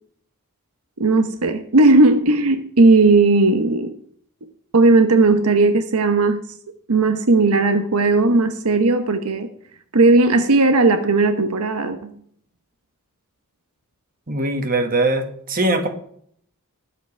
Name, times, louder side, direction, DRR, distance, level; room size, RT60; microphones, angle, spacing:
voice 1, 1.0-3.9 4.7-6.4 6.9-9.5 9.9-12.0, right 3 dB, 80° right, 8 dB, 1.1 m, -16 dB
voice 2, 14.3-15.9, right 2 dB, 40° right, 5 dB, 1.9 m, -21 dB
20.5 x 8.1 x 3.4 m, 0.62 s
head